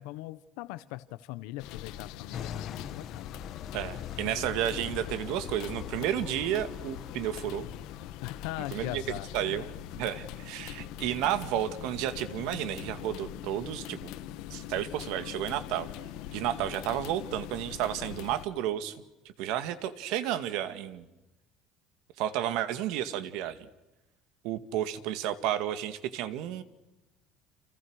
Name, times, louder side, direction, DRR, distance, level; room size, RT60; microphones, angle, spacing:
voice 1, 0.0-3.3 8.2-9.7, left 17 dB, 85° left, 14 dB, 1.0 m, -40 dB
sound 1, 1.6-18.4, left 12 dB, 65° left, 1.6 m, -43 dB
sound 2, 2.3-9.2, left 9 dB, 35° left, 1.4 m, -42 dB
voice 2, 3.7-7.7 8.7-9.0 9.3-9.7 9.9-14.1 14.5-15.9 16.3-19.0 19.4-21.1 22.2-23.6 24.4-26.6, right 11 dB, 65° right, 12 dB, 2.2 m, -32 dB
30.0 x 28.5 x 6.5 m, 1.0 s
cardioid pair, 175°, 0 cm